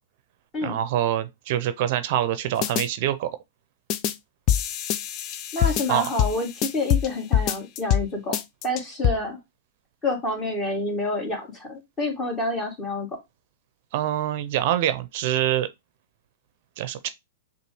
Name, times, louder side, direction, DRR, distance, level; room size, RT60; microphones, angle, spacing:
voice 1, 0.6-3.3 5.9-6.1 13.9-15.7 16.8-17.1, right 12 dB, 55° right, 0.5 m, -25 dB
sound 1, 2.6-2.9 3.9-4.1 4.5-7.1 7.3-8.1 8.3-9.1, left 10 dB, 40° left, 0.5 m, -24 dB
voice 2, 5.5-8.4 8.6-9.4 10.0-13.1, left 2 dB, 25° left, 2.3 m, -28 dB
6.6 x 2.5 x 3.0 m
hypercardioid pair, 110°, 0 cm